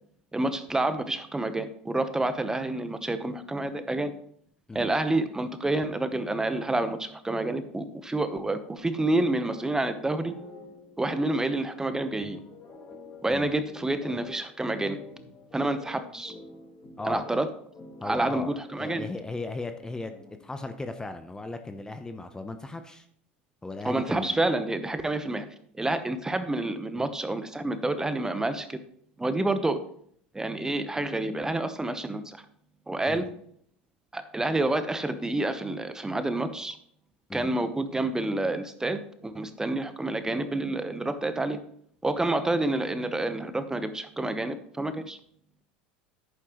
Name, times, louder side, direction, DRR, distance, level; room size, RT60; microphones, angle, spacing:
voice 1, 0.3-4.1 4.7-10.3 11.0-12.4 13.2-15.0 15.5-16.4 17.0-17.5 18.0-19.1 23.8-25.5 25.7-28.8 29.2-29.8 30.3-32.4 32.9-33.2 34.1-36.8 37.3-41.6 42.0-45.2, right 2 dB, 10° right, 11 dB, 0.9 m, -28 dB
sound 1, 8.8-20.5, left 3 dB, 45° left, 4.1 m, -49 dB
voice 2, 18.0-20.1 20.4-23.1 23.6-24.4 33.1-33.3 37.3-37.5, left 2 dB, 10° left, 8 dB, 0.8 m, -37 dB
10.5 x 9.1 x 3.1 m, 0.65 s
hypercardioid pair, 85°, 5 cm